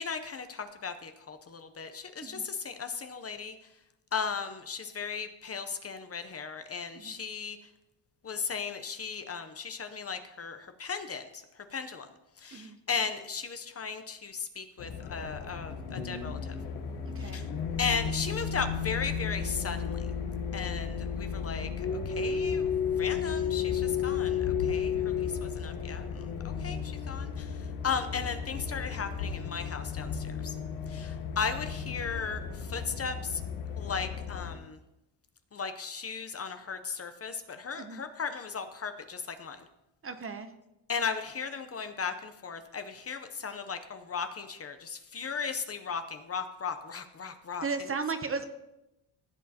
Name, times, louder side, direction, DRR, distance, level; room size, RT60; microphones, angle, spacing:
voice 1, 0.0-3.5 4.1-7.6 8.2-11.4 11.7-12.1 12.4-16.5 17.2-17.5 17.8-20.0 20.5-22.7 23.0-27.6 27.8-30.5 30.9-32.4 32.7-33.4 33.8-34.8 35.5-39.6 40.9-47.6, left 5 dB, 30° left, 8 dB, 0.6 m, -36 dB
sound 1, 14.8-34.6, left 7 dB, 80° left, 1.1 m, -33 dB
voice 2, 17.0-17.4 37.8-38.0 40.0-40.5 47.6-48.5, right 4 dB, 30° right, 9 dB, 0.7 m, -35 dB
15.5 x 7.3 x 2.8 m, 0.91 s
cardioid pair, 120°, 47 cm